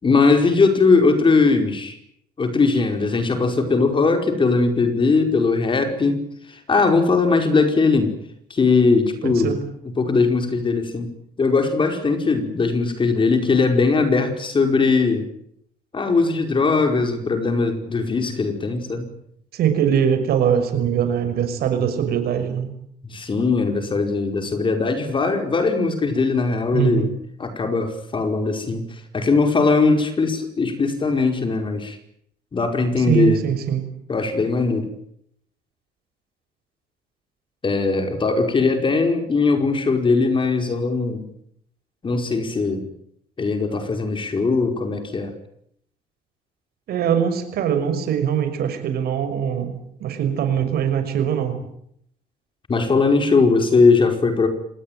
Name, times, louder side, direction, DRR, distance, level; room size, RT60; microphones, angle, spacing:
voice 1, 0.0-2.0 2.4-6.2 6.5-8.1 8.5-9.6 10.0-11.1 11.4-15.3 15.9-19.0 23.0-27.1 27.4-28.9 29.1-32.0 32.5-33.5 34.1-34.9 37.6-41.3 42.0-42.9 43.4-45.3 52.7-54.5, left 4 dB, 30° left, 6 dB, 5.0 m, -19 dB
voice 2, 9.2-9.6 19.5-22.7 26.7-27.1 33.0-33.9 46.9-51.6, right 8 dB, 70° right, 8 dB, 6.0 m, -22 dB
26.0 x 19.5 x 9.3 m, 0.72 s
cardioid pair, 110°, 17 cm